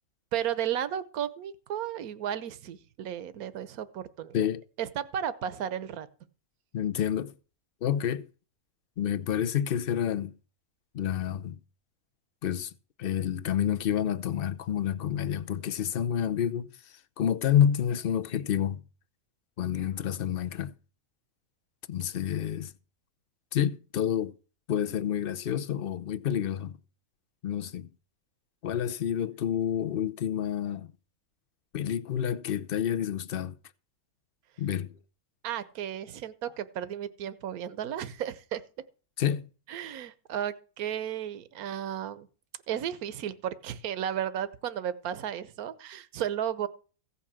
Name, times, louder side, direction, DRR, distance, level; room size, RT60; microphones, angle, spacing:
voice 1, 0.3-4.4 4.8-6.1 35.4-38.6 39.7-42.3 42.7-46.7, right 10 dB, 70° right, 1.4 m, -34 dB
voice 2, 6.7-7.3 7.8-8.3 9.0-10.3 10.9-11.6 12.4-12.7 13.0-16.7 17.2-18.8 19.6-20.7 21.9-22.7 23.5-24.3 24.7-26.7 27.4-27.9 28.6-30.9 31.7-33.5 34.6-34.9 39.2-39.5, left 9 dB, 50° left, 0.8 m, -28 dB
16.0 x 5.7 x 7.4 m
omnidirectional pair, 1.6 m